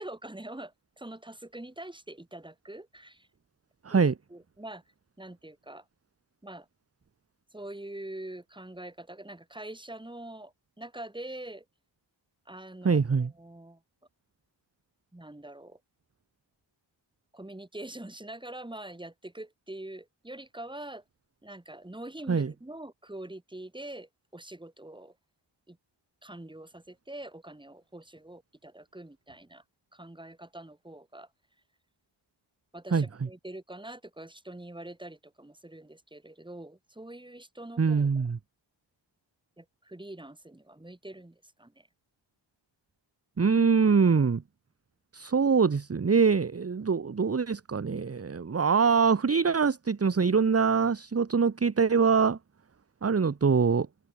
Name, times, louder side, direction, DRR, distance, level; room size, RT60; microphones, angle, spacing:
voice 1, 0.0-3.3 3.9-4.8 5.2-5.8 6.4-6.7 7.5-11.6 12.5-13.8 15.1-15.8 17.3-21.0 21.4-25.1 25.7-25.8 26.2-29.6 29.9-31.3 32.7-38.2 39.6-41.9, right 1 dB, 10° right, 3.2 m, -44 dB
voice 2, 12.8-13.3 22.3-22.5 32.9-33.1 37.8-38.4 43.4-44.4 45.1-52.4 53.0-53.9, right 5 dB, 30° right, 1.2 m, -24 dB
open air
wide cardioid pair, 100°, 46 cm